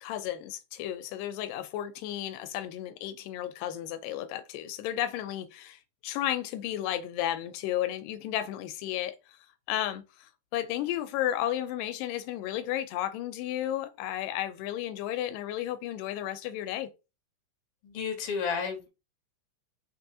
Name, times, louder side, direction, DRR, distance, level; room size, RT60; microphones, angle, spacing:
voice 1, 0.0-9.2 9.7-16.9, left 12 dB, 90° left, 2.2 m, -33 dB
voice 2, 17.8-18.9, left 6 dB, 55° left, 2.0 m, -32 dB
5.7 x 3.3 x 2.8 m
omnidirectional pair, 3.8 m